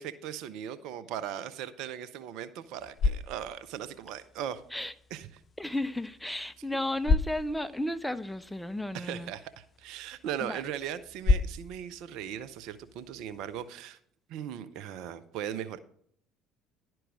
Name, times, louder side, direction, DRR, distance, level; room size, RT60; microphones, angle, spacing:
voice 1, 0.0-4.6 5.1-5.3 8.9-14.0 14.3-15.8, right 9 dB, 65° right, 0.6 m, -38 dB
sound 1, 2.6-13.7, left 3 dB, 30° left, 0.8 m, -34 dB
voice 2, 5.6-9.3 10.4-10.6, left 1 dB, 5° left, 0.6 m, -33 dB
11.5 x 4.6 x 6.1 m
hypercardioid pair, 60°, 0 cm